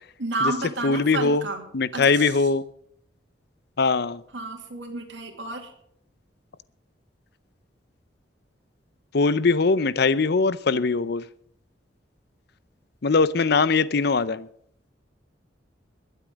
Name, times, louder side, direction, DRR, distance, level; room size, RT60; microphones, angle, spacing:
voice 1, 0.2-1.6 1.9-2.3 4.3-5.7, right 2 dB, 85° right, 2 dB, 2.5 m, -30 dB
voice 2, 0.8-1.5 1.7-2.6 3.8-4.2 9.1-11.2 13.0-14.5, left 4 dB, 60° left, 17 dB, 0.7 m, -21 dB
22.0 x 8.3 x 5.2 m, 0.67 s
head